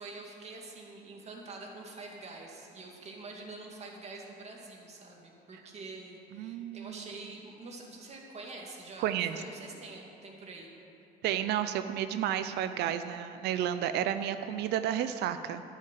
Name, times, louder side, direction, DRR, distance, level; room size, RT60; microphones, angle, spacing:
voice 1, 0.0-10.7, right 3 dB, 40° right, 0 dB, 2.3 m, -46 dB
voice 2, 6.4-7.0 9.0-9.4 11.2-15.6, right 10 dB, 80° right, 10 dB, 0.5 m, -31 dB
11.5 x 6.5 x 9.2 m, 2.8 s
cardioid pair, 110°, 17 cm